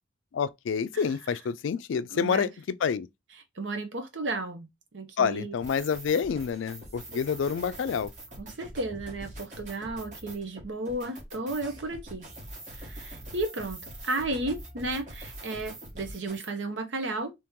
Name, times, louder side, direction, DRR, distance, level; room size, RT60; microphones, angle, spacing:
voice 1, 0.3-2.5 2.8-3.1 5.2-8.1, left 6 dB, 80° left, 0.3 m, -28 dB
voice 2, 2.1-2.5 3.6-5.5 8.4-12.2 12.7-17.3, right 2 dB, 75° right, 0.8 m, -34 dB
sound 1, 5.5-16.5, right 1 dB, 40° right, 1.2 m, -44 dB
2.9 x 2.9 x 3.6 m
head